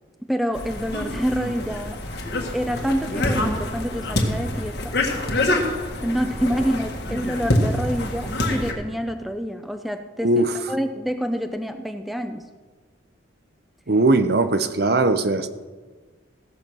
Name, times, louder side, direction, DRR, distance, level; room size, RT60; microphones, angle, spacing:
voice 1, 0.3-2.0 2.5-5.0 6.0-10.3 10.7-12.4, equal, ahead, 7 dB, 0.5 m, -27 dB
sound 1, 0.5-8.7, left 1 dB, 55° left, 1.7 m, -26 dB
voice 2, 10.2-10.6 13.9-15.5, right 2 dB, 55° right, 10 dB, 0.7 m, -19 dB
16.0 x 7.0 x 6.1 m, 1.4 s
head